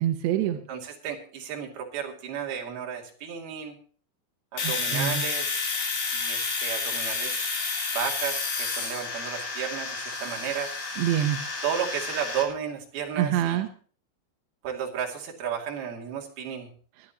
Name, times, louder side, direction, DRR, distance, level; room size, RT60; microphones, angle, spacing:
voice 1, 0.0-0.6 4.6-5.2 11.0-11.4 13.2-13.7, right 11 dB, 75° right, 6 dB, 2.6 m, -25 dB
voice 2, 0.7-3.8 4.5-5.7 6.1-7.6 7.9-10.7 11.6-13.6 14.6-16.7, right 8 dB, 55° right, 0 dB, 4.0 m, -33 dB
Domestic sounds home sounds, 4.6-12.4, left 4 dB, 75° left, 6.8 m, -30 dB
23.0 x 12.0 x 2.9 m, 0.42 s
omnidirectional pair, 5.8 m